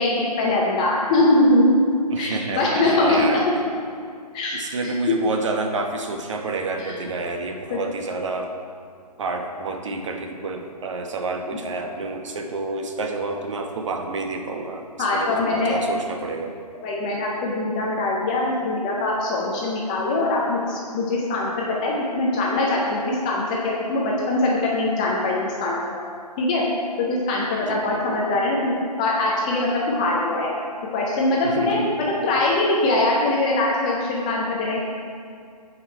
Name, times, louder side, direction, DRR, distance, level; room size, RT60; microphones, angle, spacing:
voice 1, 0.0-1.7 2.2-3.4 4.3-4.6 4.8-5.0 6.8-6.9 7.7-7.8 15.0-15.8 16.8-25.8 26.4-26.6 27.0-30.5 30.9-34.8, left 2 dB, 10° left, -3 dB, 0.4 m, -22 dB
voice 2, 2.1-3.4 4.5-8.5 9.2-16.6 27.7-28.0 31.4-31.9, right 3 dB, 45° right, 4 dB, 1.0 m, -29 dB
14.0 x 5.1 x 4.3 m, 2.3 s
hypercardioid pair, 155°, 21 cm